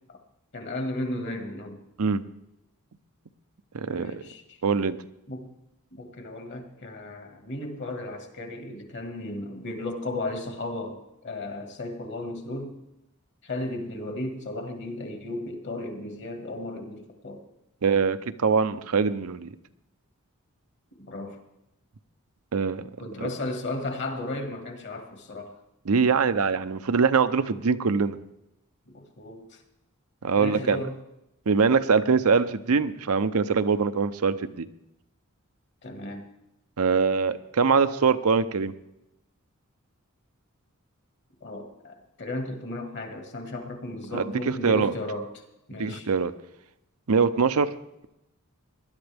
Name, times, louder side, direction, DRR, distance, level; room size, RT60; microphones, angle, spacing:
voice 1, 0.5-1.8 3.8-4.6 5.3-5.5 5.9-12.8 13.4-17.4 21.0-21.4 23.0-25.5 28.9-29.6 30.3-31.0 35.8-36.2 41.4-46.1, left 2 dB, 55° left, 5 dB, 1.9 m, -35 dB
voice 2, 3.7-4.2 4.6-5.0 17.8-19.5 22.5-22.9 23.2-23.3 25.9-28.2 30.2-30.8 31.5-34.7 36.8-38.7 44.1-44.9 45.8-46.3 47.1-47.7, right 5 dB, 80° right, 11 dB, 0.7 m, -23 dB
19.5 x 11.0 x 3.5 m, 0.87 s
head